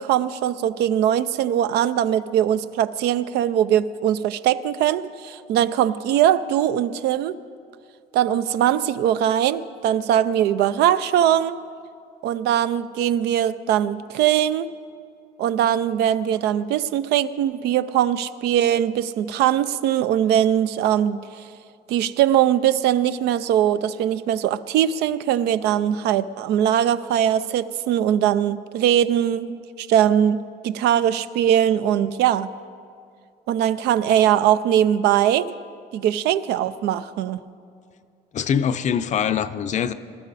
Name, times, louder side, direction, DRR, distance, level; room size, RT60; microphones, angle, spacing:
voice 1, 0.0-7.4 8.1-11.5 12.2-14.7 15.4-21.2 21.9-30.4 30.6-32.5 33.5-35.6 35.9-37.4, right 10 dB, 80° right, 14 dB, 0.5 m, -21 dB
voice 2, 38.3-39.9, left 8 dB, 45° left, 12 dB, 0.6 m, -23 dB
20.5 x 12.5 x 4.1 m, 2.4 s
cardioid pair, 110°, 17 cm